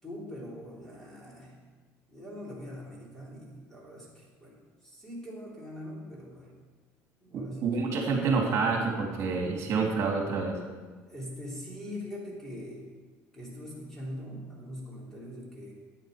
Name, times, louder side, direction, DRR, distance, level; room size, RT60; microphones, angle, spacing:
voice 1, 0.0-1.6 2.1-6.5 7.2-7.8 11.1-12.9 13.3-15.7, left 1 dB, 5° left, -4 dB, 3.3 m, -42 dB
voice 2, 7.6-10.6, right 4 dB, 45° right, 1 dB, 2.8 m, -27 dB
11.5 x 9.3 x 5.1 m, 1.4 s
cardioid pair, 140°, 6 cm